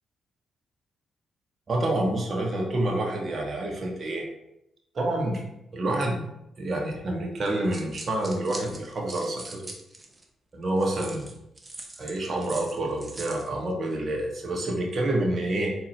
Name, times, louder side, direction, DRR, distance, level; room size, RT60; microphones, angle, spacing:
voice 1, 1.7-4.2 4.9-5.4 5.7-6.3 6.6-9.7 10.5-11.3 12.0-15.7, right 1 dB, 45° right, 0 dB, 1.2 m, -28 dB
sound 1, 7.4-10.2 10.8-13.5, right 2 dB, 25° right, 0.9 m, -42 dB
4.2 x 3.7 x 3.1 m, 0.81 s
hypercardioid pair, 45°, 0 cm